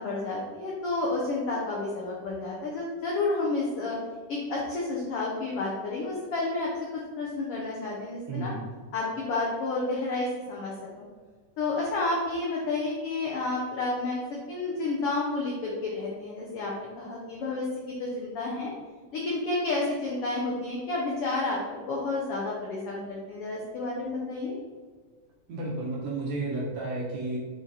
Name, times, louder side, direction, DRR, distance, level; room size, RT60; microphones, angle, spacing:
voice 1, 0.0-4.0 4.3-6.7 7.2-8.5 8.9-11.1 11.6-14.2 14.5-17.7 18.0-18.7 19.1-24.5, left 3 dB, 65° left, -3 dB, 1.4 m, -30 dB
voice 2, 8.3-8.6 25.5-27.4, right 2 dB, 65° right, -3 dB, 1.9 m, -32 dB
6.3 x 4.7 x 4.2 m, 1.5 s
omnidirectional pair, 3.8 m